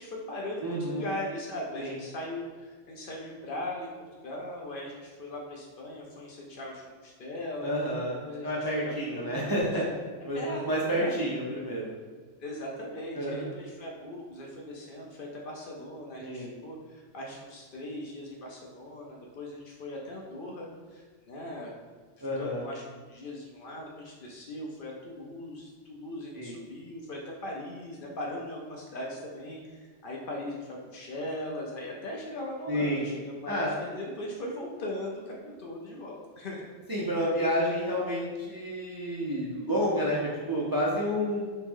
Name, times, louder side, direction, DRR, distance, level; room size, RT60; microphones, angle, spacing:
voice 1, 0.0-3.9 4.2-7.7 8.2-9.7 10.3-10.6 10.9-11.2 12.4-21.7 22.2-36.6, left 1 dB, 60° left, -2 dB, 0.7 m, -39 dB
voice 2, 0.6-1.0 1.8-1.9 7.6-9.9 10.2-11.9 13.2-13.5 16.2-16.5 22.2-22.6 26.4-26.6 32.7-33.0 33.5-33.7 36.9-41.5, equal, 35° right, -6 dB, 0.4 m, -30 dB
3.2 x 3.0 x 3.5 m, 1.5 s
omnidirectional pair, 1.2 m